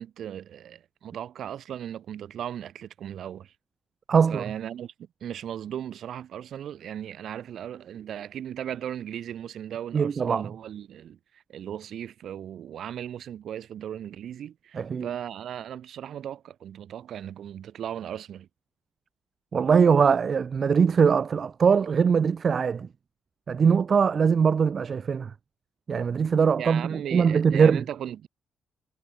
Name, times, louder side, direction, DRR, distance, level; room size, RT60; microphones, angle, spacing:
voice 1, 0.0-3.5 4.3-18.5 26.6-28.3, right 10 dB, 65° right, 7.4 m, -37 dB
voice 2, 4.1-4.4 9.9-10.5 14.7-15.1 19.5-22.9 23.5-25.3 25.9-27.8, right 6 dB, 45° right, 2.3 m, -21 dB
cardioid pair, 90°, 0 cm